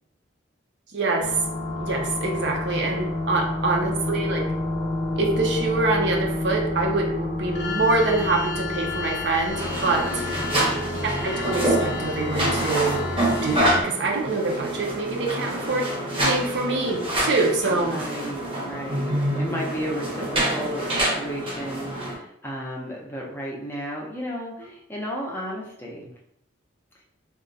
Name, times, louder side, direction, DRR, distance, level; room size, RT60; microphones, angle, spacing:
voice 1, 0.9-1.3 1.8-4.4 5.2-10.5 11.2-13.0 13.4-15.9 16.2-17.9, right 3 dB, 60° right, 1 dB, 0.5 m, -25 dB
sound 1, 1.2-13.8, left 2 dB, 60° left, 0.5 m, -29 dB
sound 2, 9.5-22.1, right 1 dB, 30° right, 0.7 m, -27 dB
voice 2, 10.2-11.2 17.7-26.1, equal, 10° left, -3 dB, 0.5 m, -34 dB
2.4 x 2.2 x 3.8 m, 0.73 s
head